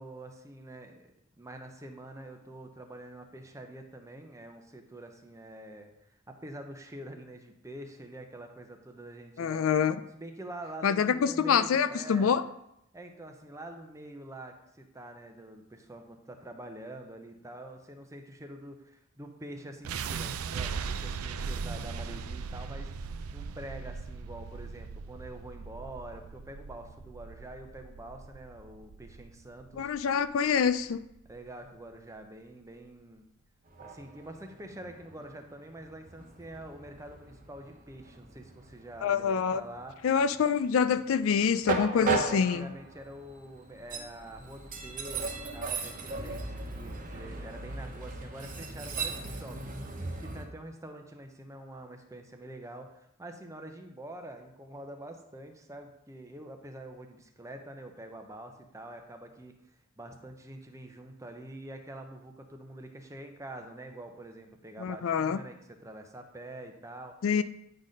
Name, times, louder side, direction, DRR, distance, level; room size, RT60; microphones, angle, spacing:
voice 1, 0.0-5.9 6.3-9.6 10.1-12.4 12.9-22.9 23.3-29.9 31.3-33.2 33.8-40.0 41.9-49.7 50.0-59.6 60.0-67.2, right 1 dB, 15° right, 5 dB, 0.7 m, -46 dB
voice 2, 9.4-10.0 10.8-12.4 29.8-31.0 39.0-39.6 40.0-42.7 64.8-65.4 67.2-67.4, left 7 dB, 65° left, 13 dB, 0.4 m, -26 dB
sound 1, 19.9-31.9, right 5 dB, 90° right, 0.4 m, -39 dB
Train, 33.7-50.4, right 4 dB, 40° right, 1.1 m, -37 dB
9.0 x 4.1 x 5.1 m, 0.80 s
head